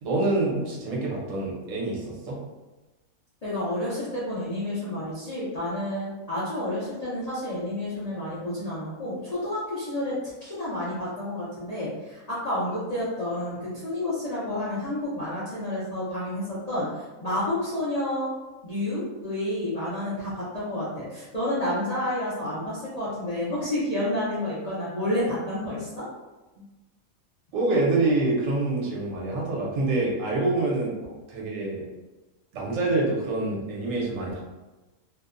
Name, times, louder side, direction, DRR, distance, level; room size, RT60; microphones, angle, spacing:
voice 1, 0.0-2.4 27.5-31.0 31.3-31.9 32.5-34.5, right 2 dB, 70° right, -3 dB, 1.0 m, -26 dB
voice 2, 3.4-10.1 10.4-13.6 13.8-16.9 17.2-18.3 18.6-26.1, left 1 dB, 50° left, -10 dB, 0.4 m, -30 dB
2.6 x 2.1 x 2.4 m, 1.1 s
omnidirectional pair, 1.5 m